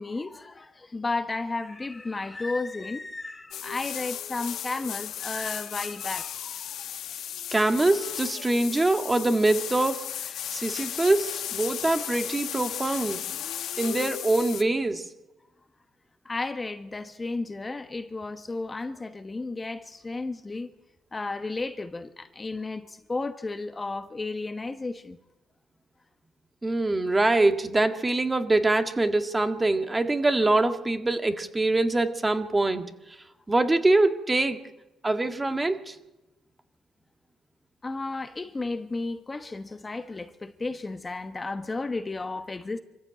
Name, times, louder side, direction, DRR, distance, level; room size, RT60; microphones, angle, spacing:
voice 1, 0.0-6.8 16.2-20.7 21.1-25.2 37.8-42.8, left 3 dB, 20° left, 1.1 m, -33 dB
sound 1, 3.5-14.6, left 10 dB, 70° left, 1.3 m, -35 dB
voice 2, 7.5-10.0 10.5-13.2 13.8-15.0 26.6-32.9 33.5-34.6 35.0-35.9, right 2 dB, 15° right, 1.7 m, -24 dB
25.5 x 15.0 x 8.9 m
cardioid pair, 95°, 0 cm